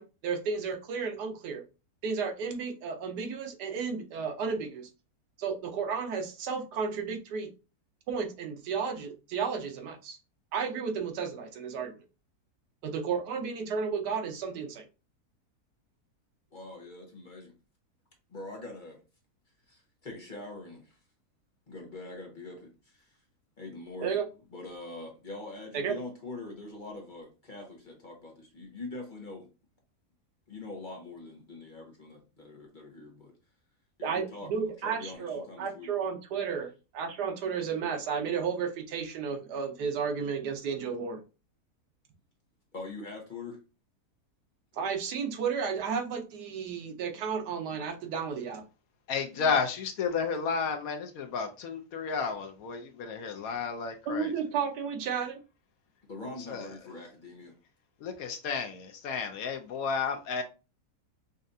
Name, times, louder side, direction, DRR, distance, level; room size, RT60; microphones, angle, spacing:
voice 1, 0.0-1.6 2.0-4.9 5.4-7.5 8.1-10.2 10.5-12.0 12.8-14.8 24.0-24.2 25.7-26.0 34.0-41.2 44.7-48.6 54.1-55.4, right 6 dB, 85° right, 1.4 m, -33 dB
voice 2, 16.5-17.5 18.3-19.0 19.7-21.0 21.7-23.2 23.6-24.2 24.5-29.5 30.5-33.3 34.0-34.5 34.8-35.9 42.7-43.6 49.3-49.5 56.1-57.5, left 2 dB, 40° left, 0.8 m, -43 dB
voice 3, 49.1-54.3 56.5-56.7 58.0-60.4, left 5 dB, 70° left, 1.0 m, -32 dB
5.3 x 2.4 x 2.6 m
omnidirectional pair, 1.7 m